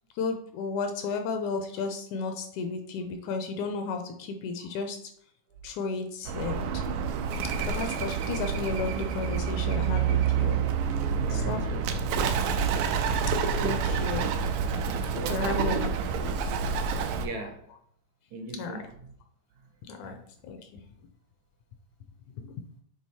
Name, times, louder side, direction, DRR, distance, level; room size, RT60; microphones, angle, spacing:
voice 1, 0.2-5.0 5.6-6.7 7.7-10.6 11.3-11.8 13.6-14.3 15.3-15.9 16.2-16.4 18.6-18.7 19.9-20.8 22.4-22.6, left 4 dB, 80° left, 5 dB, 1.9 m, -33 dB
Bird, 6.3-17.3, right 6 dB, 90° right, 2.3 m, -28 dB
voice 2, 11.2-11.5 15.1-15.8 17.2-17.7 18.3-19.1 20.0-20.2, right 3 dB, 70° right, 3 dB, 2.0 m, -39 dB
6.4 x 3.8 x 4.2 m, 0.65 s
omnidirectional pair, 3.7 m